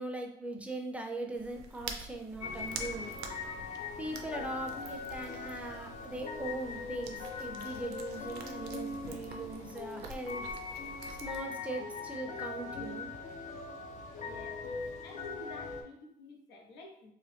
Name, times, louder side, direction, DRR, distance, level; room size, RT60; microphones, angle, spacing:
voice 1, 0.0-3.1 4.0-10.5 11.2-13.1, right 2 dB, 10° right, 3 dB, 0.5 m, -40 dB
sound 1, 1.3-11.4, right 4 dB, 80° right, 0.5 m, -47 dB
sound 2, 2.4-15.8, left 4 dB, 45° left, 0.5 m, -41 dB
sound 3, 2.5-15.5, left 1 dB, 15° left, 0.8 m, -59 dB
voice 2, 14.2-14.6 15.0-17.1, left 2 dB, 85° left, 1 dB, 0.8 m, -50 dB
2.9 x 2.2 x 3.2 m, 0.75 s
cardioid pair, 110°, 17 cm